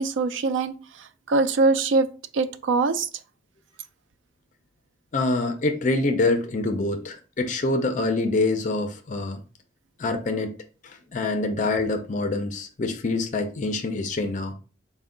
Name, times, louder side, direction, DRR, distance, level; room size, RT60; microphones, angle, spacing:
voice 1, 0.0-2.1 2.3-3.1, right 3 dB, 80° right, 0.4 m, -23 dB
voice 2, 5.1-9.4 10.0-10.5 10.8-14.5, left 2 dB, 40° left, 0.4 m, -25 dB
4.3 x 2.1 x 3.7 m
head